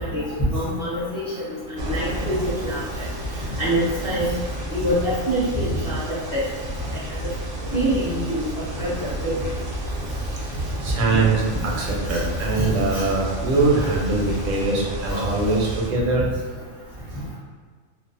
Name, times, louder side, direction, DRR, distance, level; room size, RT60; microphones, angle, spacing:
voice 1, 0.5-1.3 1.7-2.4 2.6-2.8 3.6-4.3 4.7-6.0 6.3-6.4 7.7-8.4 8.8-9.3 12.9-13.0 13.8-13.9 15.1-15.2, equal, 35° left, -11 dB, 0.6 m, -25 dB
sound 1, 1.8-15.9, right 1 dB, 60° right, 0.6 m, -31 dB
voice 2, 10.8-16.2, right 3 dB, 80° right, -2 dB, 0.9 m, -22 dB
2.6 x 2.1 x 2.5 m, 1.5 s
omnidirectional pair, 1.4 m